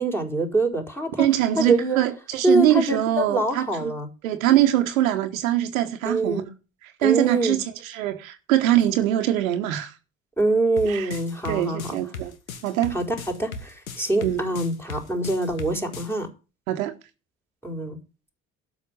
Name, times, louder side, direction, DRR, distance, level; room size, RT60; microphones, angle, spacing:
voice 1, 0.0-1.3 1.6-2.0 2.4-4.1 6.0-6.5 7.0-7.6 10.4-12.0 12.9-16.3 17.6-18.0, right 2 dB, 5° left, 4.4 m, -24 dB
voice 2, 1.2-3.7 4.2-6.4 6.8-9.9 10.8-11.1 11.5-12.3 12.6-12.9 14.2-14.4 16.7-16.9, right 13 dB, 75° right, 1.3 m, -23 dB
sound 1, 10.8-16.1, left 4 dB, 85° left, 1.3 m, -37 dB
12.0 x 6.3 x 8.3 m
figure-of-eight pair, 55°, 41 cm